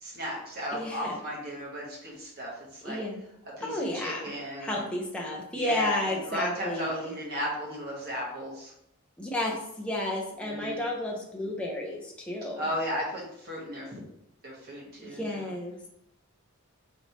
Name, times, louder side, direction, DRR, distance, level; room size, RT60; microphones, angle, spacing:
voice 1, 0.0-3.0 3.6-4.8 5.5-8.7 10.4-10.8 12.6-14.0 14.4-15.3, equal, 45° right, -4 dB, 1.2 m, -35 dB
voice 2, 0.7-1.1 2.8-3.2 3.7-4.3 4.6-7.1 9.2-12.7 15.0-15.9, left 1 dB, 5° left, -3 dB, 0.7 m, -32 dB
4.5 x 3.1 x 2.7 m, 0.76 s
head